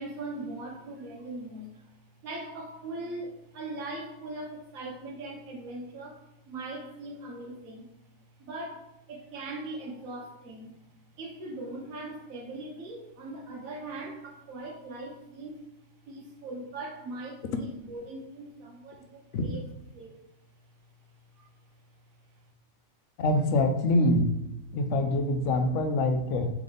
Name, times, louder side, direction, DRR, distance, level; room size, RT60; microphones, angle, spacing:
voice 1, 0.0-1.9 2.2-7.9 8.4-10.8 11.2-15.6 16.1-19.7 19.9-20.2 21.4-21.5, right 2 dB, 75° right, 0 dB, 1.3 m, -40 dB
voice 2, 23.2-24.3 24.7-26.5, left 1 dB, 70° left, 5 dB, 0.9 m, -25 dB
3.4 x 3.4 x 3.8 m, 0.93 s
omnidirectional pair, 1.4 m